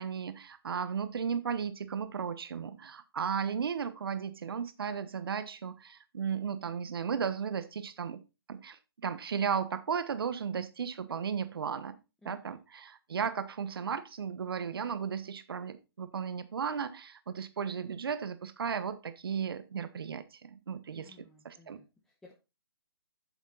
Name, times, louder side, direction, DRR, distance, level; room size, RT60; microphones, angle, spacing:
voice 1, 0.0-8.2 8.5-12.0 12.2-21.1 21.4-21.8, right 7 dB, 60° right, 11 dB, 1.2 m, -35 dB
voice 2, 12.2-12.6 20.9-22.3, left 3 dB, 5° left, -2 dB, 1.1 m, -58 dB
8.0 x 7.2 x 4.1 m, 0.27 s
hypercardioid pair, 155°, 14 cm